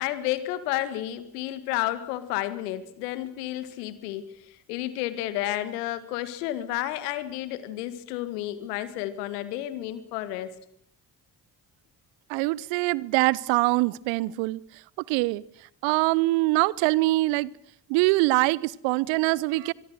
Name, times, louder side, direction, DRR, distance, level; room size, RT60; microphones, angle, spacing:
voice 1, 0.0-10.6, left 14 dB, 80° left, 1.9 m, -31 dB
voice 2, 12.3-14.6 15.1-15.4 15.8-17.5 17.9-19.7, right 21 dB, 70° right, 0.8 m, -23 dB
24.0 x 23.0 x 6.6 m
hypercardioid pair, 45°, 46 cm